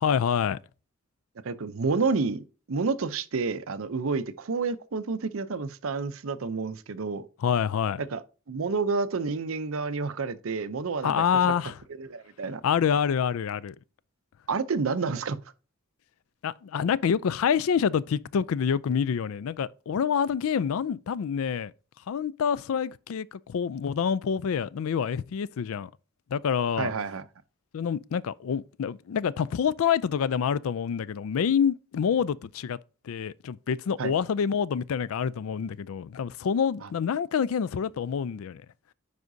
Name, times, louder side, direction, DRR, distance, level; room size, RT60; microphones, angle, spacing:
voice 1, 0.0-0.6 7.4-8.0 11.0-11.8 12.6-13.7 16.4-21.7 22.1-25.9 26.3-26.9 27.7-32.8 33.0-38.6, left 7 dB, 75° left, 0.3 m, -27 dB
voice 2, 1.4-7.3 8.0-11.5 12.0-12.6 14.5-15.4 26.8-27.3 34.0-34.1 36.8-36.9, right 4 dB, 70° right, 0.6 m, -29 dB
9.4 x 4.9 x 2.7 m
head